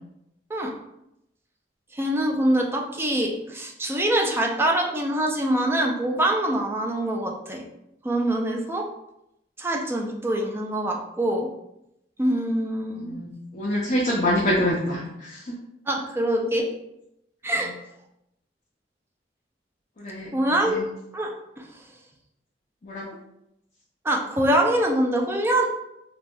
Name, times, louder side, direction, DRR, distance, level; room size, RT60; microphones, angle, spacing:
voice 1, 1.9-7.6 8.0-8.8 9.6-11.5 12.2-13.1 15.9-16.7 17.4-17.7 20.3-20.8 21.1-21.3 21.6-21.7 24.0-25.6, right 1 dB, 15° right, 0 dB, 0.3 m, -24 dB
voice 2, 13.0-15.6 20.0-20.9 22.8-23.1, left 1 dB, 40° left, -4 dB, 0.5 m, -26 dB
3.1 x 2.2 x 2.6 m, 0.83 s
head